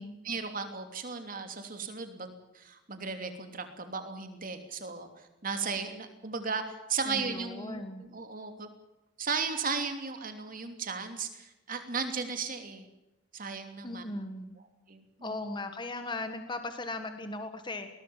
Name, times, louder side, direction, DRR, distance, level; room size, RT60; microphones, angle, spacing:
voice 1, 0.2-5.1 5.4-8.7 9.2-12.9 13.3-14.0 14.9-15.3, right 5 dB, 45° right, 6 dB, 3.0 m, -36 dB
voice 2, 7.0-8.1 13.8-14.5 15.2-17.9, left 2 dB, 25° left, 8 dB, 1.5 m, -38 dB
21.0 x 20.0 x 7.4 m, 0.95 s
head